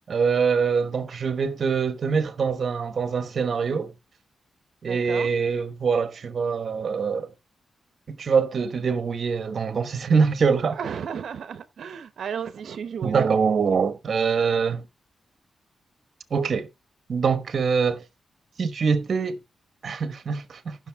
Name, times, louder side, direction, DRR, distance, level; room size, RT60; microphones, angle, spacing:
voice 1, 0.1-3.9 4.8-7.3 8.1-10.8 13.0-14.9 16.3-16.7 17.1-18.0 18.6-19.4 19.8-20.8, right 5 dB, 50° right, 1.2 m, -24 dB
voice 2, 4.8-5.4 10.7-13.2, right 7 dB, 70° right, 0.9 m, -34 dB
15.0 x 6.4 x 3.5 m
wide cardioid pair, 160°, 0 cm